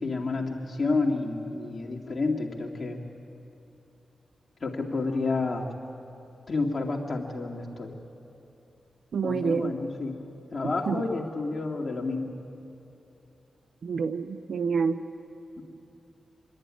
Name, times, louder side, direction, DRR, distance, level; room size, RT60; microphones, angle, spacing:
voice 1, 0.0-3.0 4.6-5.7 6.5-7.9 9.2-10.2 10.5-12.3 15.6-15.7, left 3 dB, 45° left, -1 dB, 2.5 m, -30 dB
voice 2, 9.1-9.7 10.9-11.0 13.8-15.0, right 5 dB, 75° right, 12 dB, 0.6 m, -27 dB
25.5 x 10.5 x 9.8 m, 2.9 s
cardioid pair, 65°, 0 cm